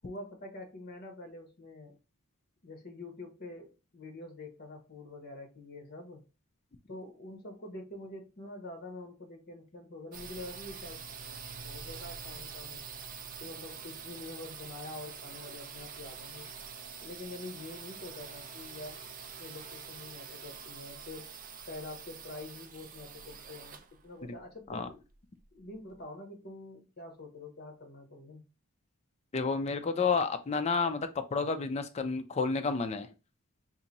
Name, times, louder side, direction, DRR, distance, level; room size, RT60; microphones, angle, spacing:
voice 1, 0.0-2.0 2.6-6.2 6.9-12.8 13.4-16.5 17.0-19.1 19.4-21.3 21.7-25.0 25.5-28.4, left 2 dB, 45° left, 1.0 m, -46 dB
sound 1, 10.1-25.8, right 6 dB, 40° right, 0.5 m, -46 dB
voice 2, 29.3-33.1, left 4 dB, 30° left, 0.4 m, -30 dB
2.8 x 2.6 x 3.9 m
head